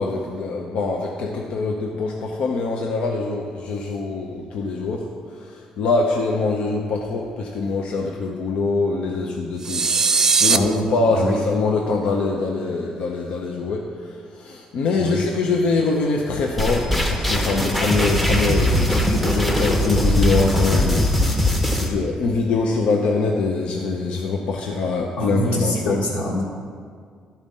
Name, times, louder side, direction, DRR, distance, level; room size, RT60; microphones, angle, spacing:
voice 1, 0.0-26.0, left 3 dB, 65° left, 0 dB, 0.7 m, -24 dB
sound 1, 9.6-10.6, right 5 dB, 25° right, 0.3 m, -18 dB
sound 2, 16.6-21.9, left 1 dB, 5° left, 0.8 m, -20 dB
voice 2, 25.2-26.4, left 1 dB, 80° left, -5 dB, 1.6 m, -24 dB
11.5 x 4.3 x 5.4 m, 2.1 s
cardioid pair, 155°, 2 cm